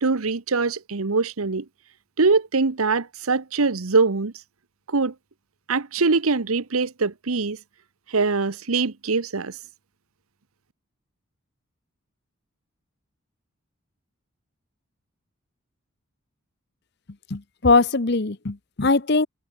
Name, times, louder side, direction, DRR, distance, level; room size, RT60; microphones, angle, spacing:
voice 1, 0.0-1.6 2.2-4.3 4.9-5.1 5.7-7.6 8.1-9.6, right 4 dB, 85° right, 1.0 m, -23 dB
voice 2, 17.3-19.3, left 3 dB, 50° left, 1.0 m, -21 dB
head